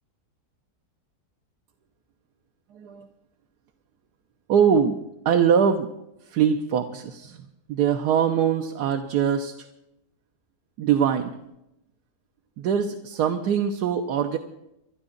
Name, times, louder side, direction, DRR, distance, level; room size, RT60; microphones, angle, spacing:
voice 1, 2.7-3.1 4.5-5.0 5.2-5.9 6.3-9.7 10.8-11.4 12.6-14.4, right 7 dB, 80° right, 4 dB, 1.4 m, -23 dB
26.5 x 11.5 x 3.9 m, 0.87 s
omnidirectional pair, 1.7 m